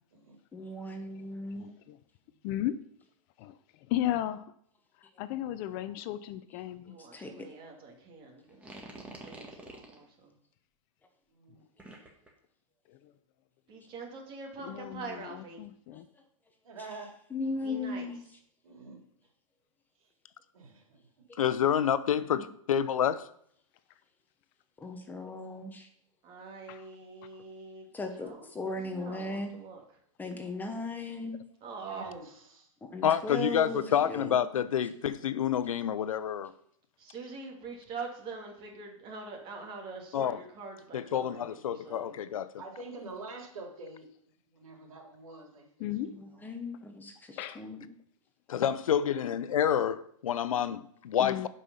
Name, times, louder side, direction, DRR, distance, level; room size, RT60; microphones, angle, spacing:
voice 1, 0.5-1.7 7.1-7.5 17.3-18.2 22.4-22.5 24.8-25.9 27.9-29.5 30.2-31.4 32.8-34.4 46.1-47.9, left 2 dB, 10° left, 1.0 m, -37 dB
voice 2, 1.6-2.0 2.4-2.8 3.4-3.5 3.9-4.5 5.2-6.9 14.6-16.1 26.7-26.9 45.8-46.2 47.4-47.6 51.2-51.5, left 12 dB, 35° left, 0.5 m, -35 dB
voice 3, 6.8-8.8 9.2-10.3 13.7-15.6 17.6-18.1 26.2-27.9 28.2-28.4 28.8-29.8 31.6-32.1 37.0-42.1, right 4 dB, 30° right, 2.9 m, -44 dB
sound 1, 8.5-10.0 11.8-12.3, right 2 dB, 10° right, 1.7 m, -46 dB
voice 4, 11.3-11.6 16.6-17.1 18.6-19.0 20.5-21.0 28.2-28.4 29.0-29.3 31.8-32.7 33.5-34.2 42.6-44.1 44.5-45.9 46.1-46.5, right 3 dB, 85° right, 3.6 m, -47 dB
voice 5, 21.4-23.2 33.0-36.5 40.1-40.4 40.9-42.5 48.5-51.5, left 9 dB, 80° left, 0.8 m, -28 dB
11.0 x 5.6 x 5.7 m
hypercardioid pair, 135°, 17 cm